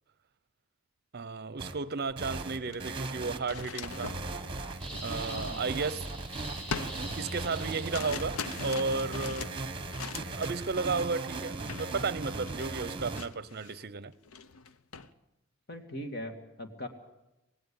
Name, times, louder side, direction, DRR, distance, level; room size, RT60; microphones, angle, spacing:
voice 1, 1.1-4.2 5.0-6.1 7.0-9.6 10.4-14.1, right 4 dB, 50° right, 0.7 m, -33 dB
sound 1, 1.6-1.7 2.2-13.2, right 3 dB, 25° right, 1.3 m, -38 dB
sound 2, 2.0-2.2 2.6-6.2 6.7-10.6 10.9-11.2 11.7-12.0 12.2-13.9 14.2-15.1, left 5 dB, 90° left, 0.7 m, -42 dB
sound 3, 4.8-8.5, right 1 dB, 5° left, 7.9 m, -44 dB
voice 2, 5.3-5.6 15.0-15.1 15.7-16.9, left 1 dB, 50° left, 2.3 m, -40 dB
18.0 x 17.5 x 8.9 m
head